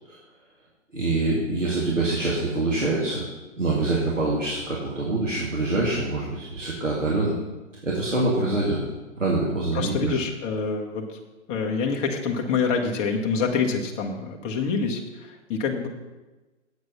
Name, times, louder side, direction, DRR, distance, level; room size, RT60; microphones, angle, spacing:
voice 1, 0.9-3.2 3.6-7.4 7.8-8.8 9.2-10.2, right 2 dB, 90° right, -5 dB, 2.4 m, -25 dB
voice 2, 9.7-11.0 11.5-15.9, left 5 dB, 15° left, 1 dB, 0.9 m, -26 dB
8.0 x 7.8 x 5.6 m, 1.1 s
figure-of-eight pair, 130°, 36 cm